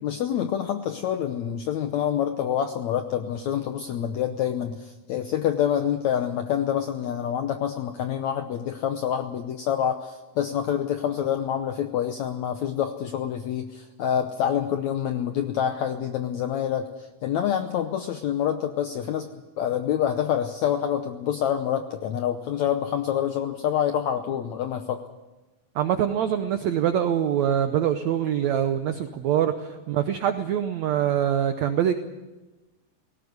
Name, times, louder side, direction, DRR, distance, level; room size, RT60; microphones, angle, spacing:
voice 1, 0.0-19.3 19.6-25.0, left 9 dB, 80° left, 7 dB, 1.6 m, -27 dB
voice 2, 25.7-31.9, right 10 dB, 85° right, 8 dB, 1.6 m, -24 dB
18.0 x 17.5 x 9.5 m, 1.1 s
omnidirectional pair, 4.3 m